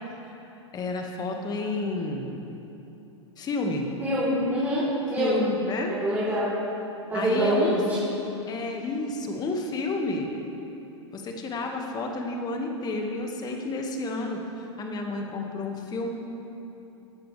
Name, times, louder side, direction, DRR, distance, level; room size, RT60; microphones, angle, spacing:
voice 1, 0.7-2.4 3.4-3.9 5.2-5.9 7.1-8.1 8.5-10.3 11.1-16.1, left 2 dB, 25° left, 2 dB, 1.9 m, -30 dB
voice 2, 4.0-5.4 5.9-6.5 7.1-7.8, equal, 15° right, -11 dB, 3.8 m, -25 dB
18.5 x 13.0 x 3.5 m, 3.0 s
hypercardioid pair, 105°, 16 cm